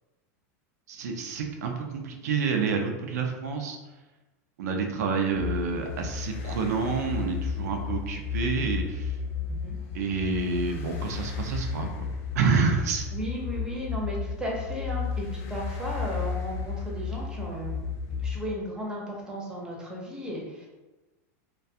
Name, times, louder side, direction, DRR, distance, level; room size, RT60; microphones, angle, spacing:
voice 1, 0.9-3.8 4.6-9.1 9.9-12.0 12.3-13.1, right 5 dB, 85° right, 3 dB, 0.5 m, -28 dB
sound 1, 5.3-18.4, left 5 dB, 55° left, 0.3 m, -33 dB
voice 2, 13.1-17.8 18.2-20.7, equal, 10° right, -3 dB, 0.6 m, -35 dB
2.3 x 2.2 x 2.6 m, 1.1 s
supercardioid pair, 135°, 8 cm